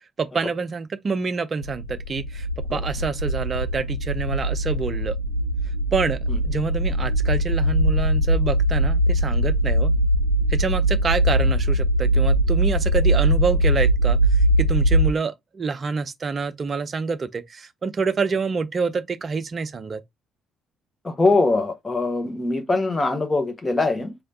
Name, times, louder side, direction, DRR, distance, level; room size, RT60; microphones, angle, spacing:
voice 1, 0.2-5.1 5.9-6.2 6.4-9.9 10.5-20.0, right 4 dB, 35° right, 0.5 m, -27 dB
sound 1, 1.6-15.1, right 1 dB, 90° right, 0.4 m, -21 dB
voice 2, 21.0-24.2, left 3 dB, 20° left, 1.1 m, -22 dB
4.5 x 3.2 x 2.6 m
figure-of-eight pair, 45°, 0 cm